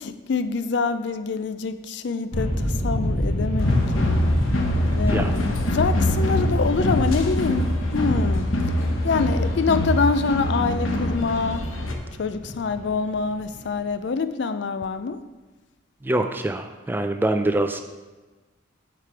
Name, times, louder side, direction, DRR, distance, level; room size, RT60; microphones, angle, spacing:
voice 1, 0.0-4.4 4.9-8.7 9.0-11.7 12.2-15.2, left 4 dB, 60° left, 11 dB, 0.4 m, -26 dB
sound 1, 2.3-13.8, left 1 dB, 35° left, 2.0 m, -29 dB
sound 2, 3.6-11.9, left 1 dB, 80° left, 0.9 m, -24 dB
voice 2, 16.0-17.8, right 1 dB, 10° right, 7 dB, 0.3 m, -24 dB
8.5 x 4.9 x 4.6 m, 1.2 s
head